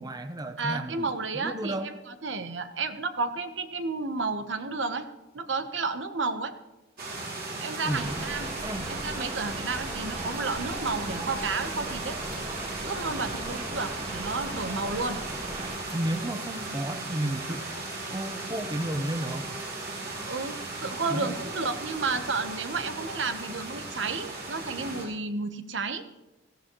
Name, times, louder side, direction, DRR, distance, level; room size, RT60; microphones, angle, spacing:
voice 1, 0.0-1.1 1.3-1.9 7.8-8.2 8.6-8.9 13.1-13.4 15.9-17.7 18.1-19.5 21.1-21.4, right 1 dB, 20° right, 8 dB, 0.7 m, -32 dB
voice 2, 0.6-5.1 5.3-6.5 7.6-8.5 8.9-12.2 12.8-15.2 20.3-26.0, right 4 dB, 75° right, 8 dB, 1.1 m, -32 dB
sound 1, 7.0-25.1, right 2 dB, 55° right, 3.7 m, -37 dB
Rain, 7.9-15.8, right 2 dB, 35° right, 1.7 m, -38 dB
18.5 x 14.5 x 3.1 m, 1.1 s
head